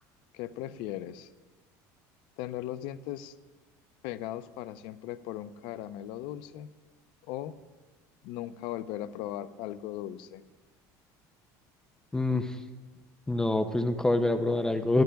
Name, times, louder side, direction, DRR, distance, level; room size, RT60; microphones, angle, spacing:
voice 1, 0.3-1.3 2.4-3.4 4.0-6.7 7.3-7.5 8.2-10.4, left 13 dB, 65° left, 13 dB, 0.6 m, -38 dB
voice 2, 12.1-12.6 13.3-15.0, left 2 dB, 5° left, 7 dB, 0.5 m, -26 dB
22.0 x 12.5 x 2.3 m, 1.3 s
cardioid pair, 150°, 9 cm